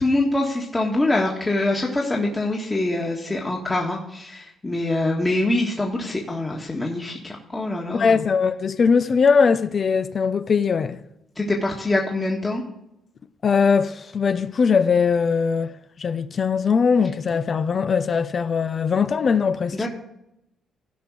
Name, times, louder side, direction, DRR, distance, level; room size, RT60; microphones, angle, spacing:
voice 1, 0.0-8.2 11.3-12.6 19.7-19.9, left 2 dB, 20° left, 1.6 m, -24 dB
voice 2, 7.9-11.0 13.4-19.8, left 5 dB, 45° left, 0.6 m, -20 dB
15.5 x 5.3 x 4.8 m
cardioid pair, 90°, 0 cm